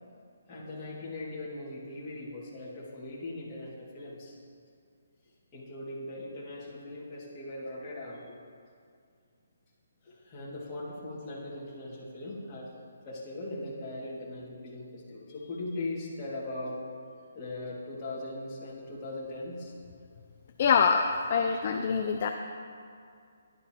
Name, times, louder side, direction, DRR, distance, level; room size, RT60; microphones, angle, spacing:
voice 1, 0.5-4.4 5.5-8.4 10.0-12.7 13.1-16.8 17.3-19.7, left 2 dB, 15° left, -8 dB, 2.2 m, -39 dB
voice 2, 20.6-22.3, left 6 dB, 35° left, 5 dB, 0.4 m, -25 dB
16.0 x 11.5 x 3.0 m, 2.3 s
hypercardioid pair, 175°, 0 cm